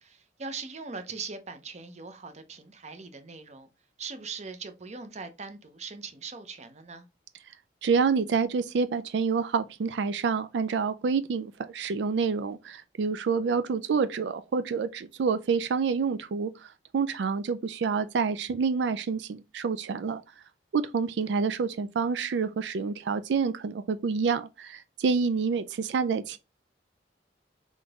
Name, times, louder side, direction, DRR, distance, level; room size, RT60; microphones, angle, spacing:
voice 1, 0.0-3.7 4.0-7.1, right 4 dB, 40° right, 0.7 m, -41 dB
voice 2, 7.8-20.2 20.7-26.4, right 5 dB, 85° right, 0.4 m, -28 dB
3.8 x 3.7 x 3.5 m
head